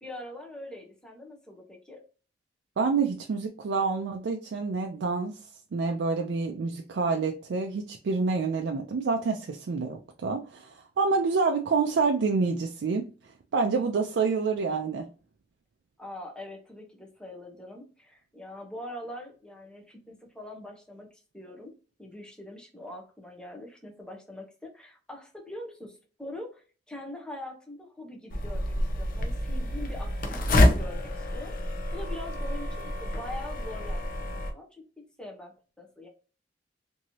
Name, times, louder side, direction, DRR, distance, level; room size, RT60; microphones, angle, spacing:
voice 1, 0.0-2.0 16.0-21.1 21.3-21.7 22.0-34.8 35.2-36.1, left 1 dB, 5° left, 0 dB, 0.7 m, -43 dB
voice 2, 2.8-13.1 13.5-15.1, right 4 dB, 85° right, 3 dB, 0.4 m, -27 dB
sound 1, 28.3-34.5, left 1 dB, 50° left, 0.5 m, -27 dB
3.0 x 2.6 x 2.7 m, 0.36 s
head